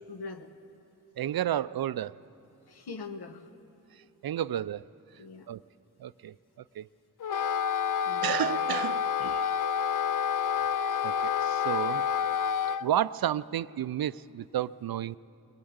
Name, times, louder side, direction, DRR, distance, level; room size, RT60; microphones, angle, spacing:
voice 1, 0.1-0.5 2.7-3.5 5.2-5.5 8.0-8.5, left 4 dB, 75° left, 6 dB, 1.3 m, -42 dB
voice 2, 1.2-2.2 4.2-4.8 5.5-5.6 6.0-6.3 6.8-6.9 8.2-9.4 11.0-12.0 12.8-15.2, right 11 dB, 65° right, 18 dB, 0.5 m, -31 dB
Wind instrument woodwind instrument, 7.2-12.9, left 7 dB, 55° left, 0.5 m, -28 dB
21.0 x 20.0 x 8.0 m, 2.8 s
wide cardioid pair, 85°, 39 cm